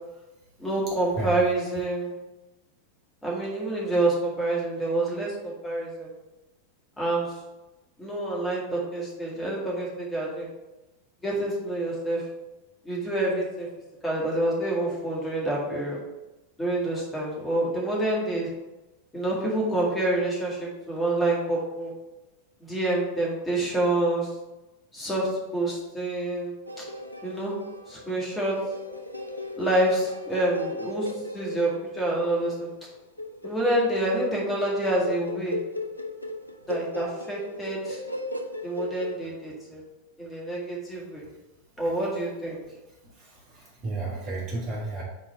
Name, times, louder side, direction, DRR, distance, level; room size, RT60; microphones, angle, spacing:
voice 1, 0.6-2.1 3.2-6.1 7.0-7.3 8.0-10.5 11.2-12.2 12.8-13.7 14.0-16.0 16.6-18.5 19.1-21.9 22.6-24.3 24.9-26.8 27.2-27.5 27.9-28.6 29.6-31.1 31.3-32.7 33.4-35.6 36.7-38.0 38.6-39.8 40.2-41.2 41.8-42.6, right 1 dB, 10° left, -4 dB, 1.9 m, -27 dB
sound 1, 26.7-39.2, left 2 dB, 90° left, 0.5 m, -37 dB
voice 2, 43.1-45.0, right 3 dB, 35° right, -5 dB, 2.1 m, -33 dB
4.3 x 4.3 x 5.5 m, 1.0 s
figure-of-eight pair, 90°, 0 cm